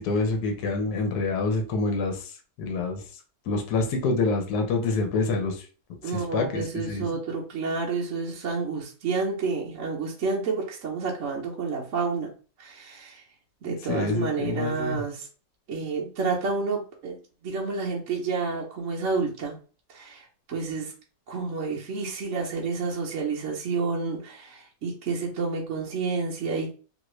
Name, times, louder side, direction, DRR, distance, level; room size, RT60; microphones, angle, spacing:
voice 1, 0.0-2.2 2.6-3.0 3.5-5.6 6.1-7.0 13.9-15.0, left 3 dB, 65° left, 4 dB, 1.2 m, -26 dB
voice 2, 6.0-12.3 12.6-13.2 13.6-15.3 15.7-17.2 17.4-19.6 19.9-20.9 21.3-26.7, right 4 dB, 55° right, -3 dB, 0.9 m, -29 dB
3.1 x 2.5 x 3.1 m, 0.37 s
omnidirectional pair, 1.9 m